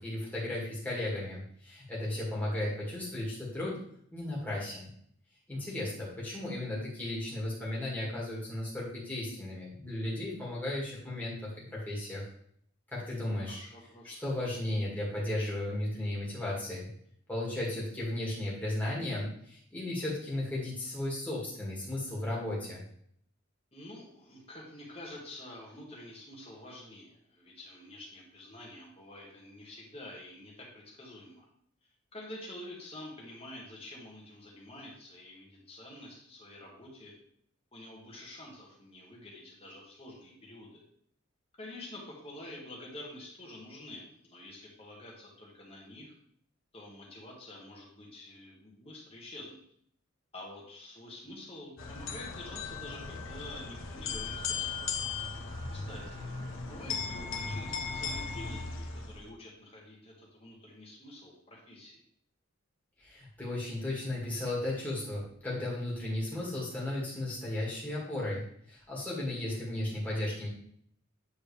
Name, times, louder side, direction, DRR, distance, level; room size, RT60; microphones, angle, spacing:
voice 1, 0.0-3.8 4.1-4.9 5.5-12.2 12.9-13.6 14.0-16.9 17.3-22.8 63.0-70.5, left 1 dB, 10° left, -6 dB, 2.3 m, -35 dB
voice 2, 13.5-14.2 23.7-31.5 32.1-37.1 37.7-40.8 41.6-46.2 46.7-49.6 50.3-54.9 55.7-62.0, left 1 dB, 30° left, -2 dB, 1.7 m, -48 dB
sound 1, 51.8-59.3, left 5 dB, 65° left, 0.8 m, -37 dB
8.5 x 4.3 x 3.4 m, 0.65 s
head